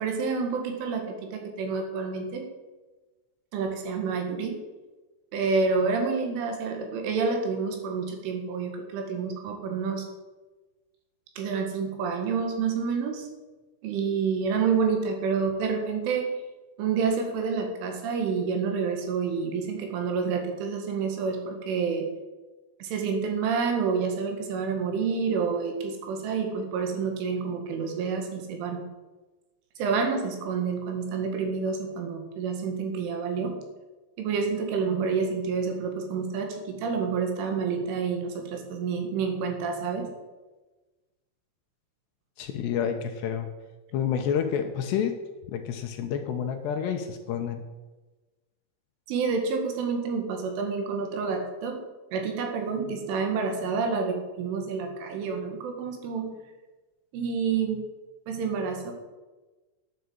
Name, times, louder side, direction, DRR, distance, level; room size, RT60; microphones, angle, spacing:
voice 1, 0.0-2.5 3.5-4.6 5.3-10.1 11.4-13.3 13.8-16.3 16.8-22.1 22.8-28.8 29.8-33.6 34.2-40.1 49.1-51.8 52.1-56.4 57.1-57.9 58.3-58.9, right 5 dB, 70° right, 4 dB, 4.2 m, -28 dB
voice 2, 42.4-43.5 43.9-45.1 45.5-47.6, left 8 dB, 80° left, 5 dB, 2.5 m, -29 dB
11.0 x 8.4 x 7.9 m, 1.2 s
omnidirectional pair, 5.9 m